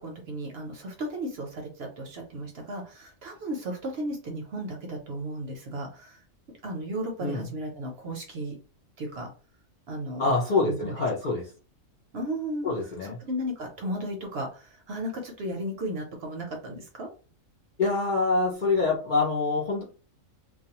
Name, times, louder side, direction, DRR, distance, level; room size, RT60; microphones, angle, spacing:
voice 1, 0.0-6.2 6.6-8.5 9.0-9.3 9.9-10.3 10.6-10.9 12.1-12.7 13.0-17.1, right 1 dB, 60° right, 2 dB, 0.7 m, -35 dB
voice 2, 7.2-7.5 10.2-11.5 12.6-13.2 17.8-19.8, left 3 dB, 50° left, -3 dB, 0.6 m, -25 dB
2.4 x 2.2 x 2.8 m, 0.35 s
omnidirectional pair, 1.4 m